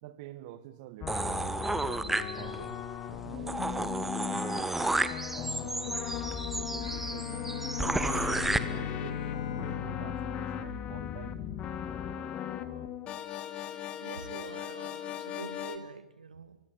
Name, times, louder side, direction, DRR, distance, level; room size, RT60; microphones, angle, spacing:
voice 1, 0.0-2.7 3.1-4.7 5.3-6.0 6.5-11.4, right 13 dB, 35° right, 13 dB, 2.2 m, -47 dB
sound 1, 1.0-15.8, left 9 dB, 25° left, 2.0 m, -38 dB
sound 2, 1.1-2.7 3.1-3.2 3.5-8.6, right 2 dB, 5° right, 1.2 m, -32 dB
Bowed string instrument, 6.8-11.5, left 7 dB, 50° left, 2.9 m, -40 dB
voice 2, 14.0-16.6, right 5 dB, 70° right, 13 dB, 2.0 m, -45 dB
24.0 x 23.5 x 9.7 m, 0.91 s
figure-of-eight pair, 115°, 5 cm